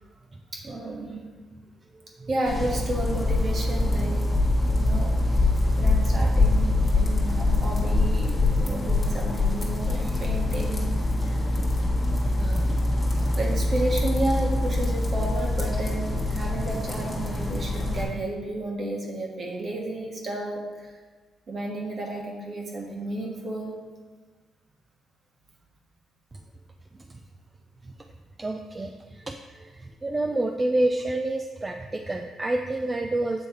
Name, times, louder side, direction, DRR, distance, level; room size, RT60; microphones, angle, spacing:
voice 1, 0.5-1.3 2.3-4.2 4.7-5.1 5.8-11.5 12.4-12.8 13.3-20.9 21.5-23.8, right 2 dB, 45° right, -1 dB, 1.3 m, -32 dB
sound 1, 2.5-18.0, left 2 dB, 20° left, 1.3 m, -24 dB
voice 2, 28.4-33.5, right 2 dB, 25° right, 5 dB, 0.3 m, -29 dB
7.7 x 3.1 x 4.6 m, 1.4 s
cardioid pair, 90°, 0 cm